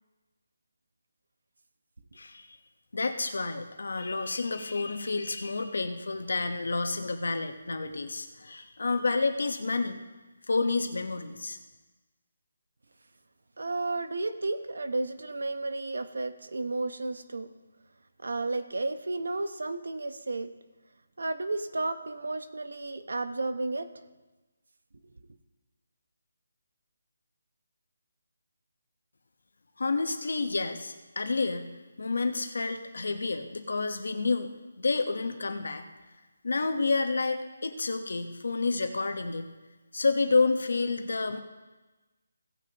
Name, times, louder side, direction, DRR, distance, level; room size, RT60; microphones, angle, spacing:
voice 1, 2.1-2.6 2.9-10.0 10.5-11.6 29.8-31.7 32.0-34.5 34.8-35.9 36.4-39.5 39.9-41.4, left 3 dB, 70° left, 7 dB, 1.1 m, -29 dB
voice 2, 13.6-17.5 18.2-20.5 21.2-24.1, right 2 dB, 80° right, 10 dB, 0.9 m, -32 dB
16.5 x 9.3 x 3.0 m, 1.2 s
hypercardioid pair, 175°, 0 cm